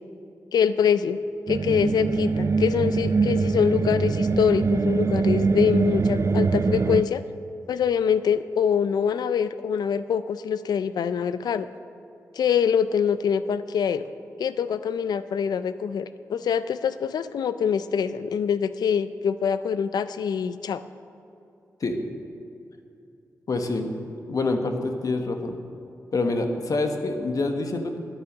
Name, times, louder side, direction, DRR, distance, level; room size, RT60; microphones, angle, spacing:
voice 1, 0.5-1.2 1.5-7.2 7.7-11.7 12.3-14.1 14.4-20.8, left 7 dB, 85° left, 13 dB, 0.4 m, -24 dB
sound 1, 1.5-7.0, right 4 dB, 45° right, 0.4 m, -23 dB
voice 2, 23.5-23.9 24.3-25.6 26.1-28.0, left 2 dB, 60° left, 5 dB, 1.2 m, -26 dB
12.0 x 9.0 x 6.1 m, 2.7 s
cardioid pair, 55°, 7 cm